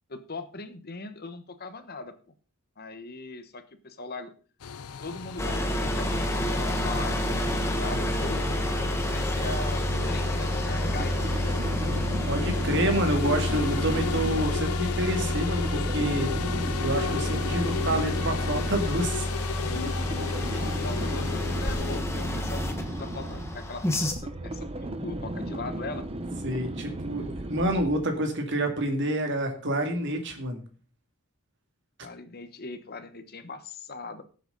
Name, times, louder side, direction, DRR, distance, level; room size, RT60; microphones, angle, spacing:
voice 1, 0.1-2.1 2.8-4.3 5.0-8.4 9.0-9.8 10.1-11.3 20.5-26.1 32.0-34.2, left 3 dB, 45° left, 10 dB, 1.1 m, -40 dB
sound 1, 4.6-22.0, left 6 dB, 80° left, 0.6 m, -36 dB
sound 2, 5.4-24.1, left 1 dB, 10° left, 1.5 m, -29 dB
sound 3, 10.6-28.2, right 1 dB, 25° right, 1.0 m, -36 dB
voice 2, 12.3-16.3 16.8-19.3 26.4-30.6, right 1 dB, 55° right, 4 dB, 2.4 m, -28 dB
17.0 x 7.9 x 4.0 m, 0.39 s
head